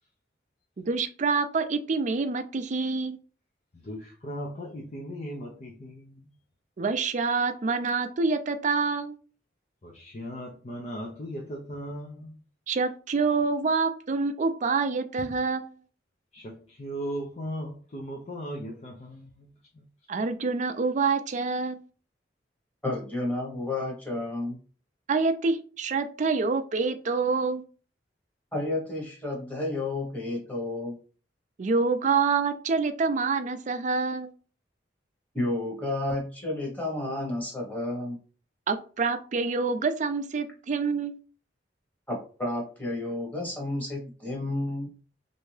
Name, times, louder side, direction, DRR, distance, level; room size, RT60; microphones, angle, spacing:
voice 1, 0.8-3.2 6.8-9.2 12.7-15.6 20.1-21.8 25.1-27.6 31.6-34.3 38.7-41.2, right 4 dB, 45° right, 0.4 m, -26 dB
voice 2, 3.7-6.3 9.8-12.3 16.3-19.5 19.7-19.8, equal, 40° left, 0.6 m, -37 dB
voice 3, 22.8-24.6 28.5-31.0 35.3-38.2 42.1-44.9, left 2 dB, 10° left, 1.1 m, -31 dB
3.3 x 2.7 x 3.2 m
head